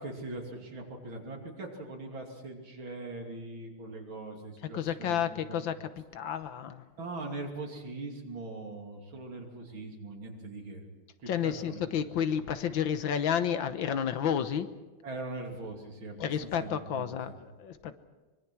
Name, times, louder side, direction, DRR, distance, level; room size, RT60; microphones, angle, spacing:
voice 1, 0.0-5.6 7.0-10.8 11.2-11.8 12.2-12.3 15.0-17.2, right 2 dB, 75° right, 2 dB, 3.6 m, -41 dB
voice 2, 4.7-5.8 6.1-6.8 11.3-14.7 16.2-17.9, left 8 dB, 75° left, 10 dB, 1.8 m, -31 dB
24.0 x 22.5 x 6.1 m, 1.2 s
omnidirectional pair, 2.2 m